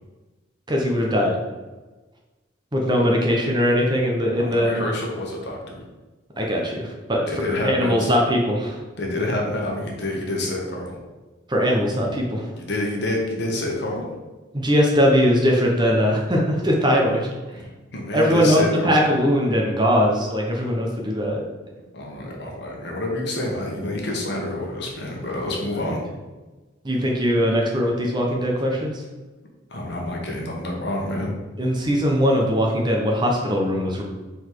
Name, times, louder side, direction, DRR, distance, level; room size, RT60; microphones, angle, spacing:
voice 1, 0.7-1.4 2.7-4.8 6.4-8.8 11.5-12.4 14.5-17.3 18.1-21.4 25.8-25.9 26.8-28.9 31.6-34.0, equal, 20° right, -1 dB, 0.9 m, -20 dB
voice 2, 4.3-5.8 7.3-8.1 9.0-11.0 12.6-14.1 17.5-17.6 17.9-19.0 21.9-26.0 29.7-31.3, left 1 dB, 55° left, -1 dB, 1.3 m, -28 dB
5.2 x 4.1 x 4.7 m, 1.2 s
head